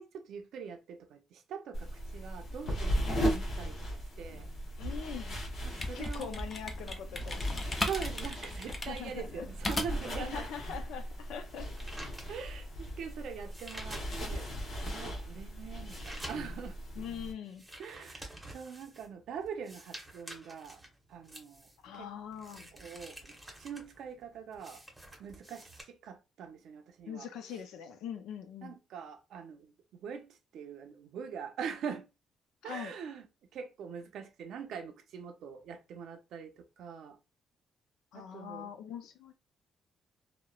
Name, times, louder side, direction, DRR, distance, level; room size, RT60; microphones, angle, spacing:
voice 1, 0.0-4.5 5.6-6.3 7.8-10.5 12.3-14.5 14.8-16.8 17.8-20.8 21.1-22.1 22.7-24.8 25.2-27.6 28.6-32.1 32.6-33.3 33.5-37.2 38.1-38.7, right 7 dB, 75° right, 0.5 m, -43 dB
sound 1, 1.7-17.3, equal, 65° left, 0.8 m, -38 dB
voice 2, 4.8-5.4 5.9-7.5 8.9-9.5 10.2-11.7 17.0-17.6 21.8-22.7 27.1-28.8 32.6-32.9 38.1-39.3, left 8 dB, 85° left, 0.4 m, -42 dB
sound 2, 5.5-10.2, left 2 dB, 30° left, 0.5 m, -37 dB
sound 3, 10.7-14.5 15.0-25.8, right 1 dB, 10° right, 0.9 m, -49 dB
2.9 x 2.0 x 2.3 m
cardioid pair, 90°, 0 cm